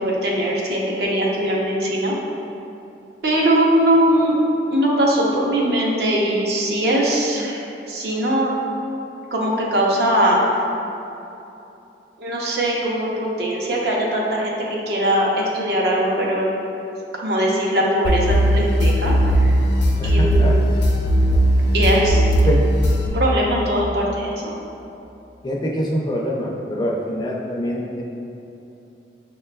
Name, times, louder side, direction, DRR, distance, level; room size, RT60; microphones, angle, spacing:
voice 1, 0.0-2.1 3.2-4.3 4.7-7.6 7.9-8.5 9.3-10.4 12.2-16.4 17.2-19.5 20.0-20.6 21.7-22.2 23.1-24.5, right 1 dB, 60° right, -3 dB, 0.6 m, -20 dB
sound 1, 18.0-23.1, equal, 80° left, 0.5 m, -17 dB
voice 2, 20.0-20.6 22.4-22.7 25.4-28.0, equal, 25° left, -2 dB, 0.4 m, -24 dB
6.5 x 2.2 x 2.2 m, 2.9 s
head